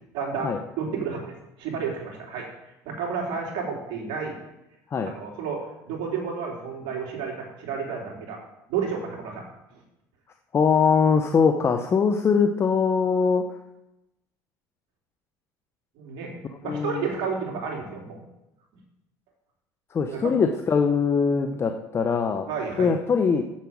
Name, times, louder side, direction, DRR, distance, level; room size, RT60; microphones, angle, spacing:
voice 1, 0.1-1.3 1.6-2.5 2.8-4.4 5.0-8.4 8.7-9.4 9.7-9.8 16.0-18.2 20.1-20.4 22.5-22.9, right 6 dB, 65° right, 0 dB, 3.3 m, -31 dB
voice 2, 10.5-13.5 16.6-17.1 19.9-22.5 22.8-23.4, left 5 dB, 30° left, 5 dB, 0.8 m, -22 dB
7.5 x 7.3 x 7.2 m, 0.91 s
supercardioid pair, 95°, 8 cm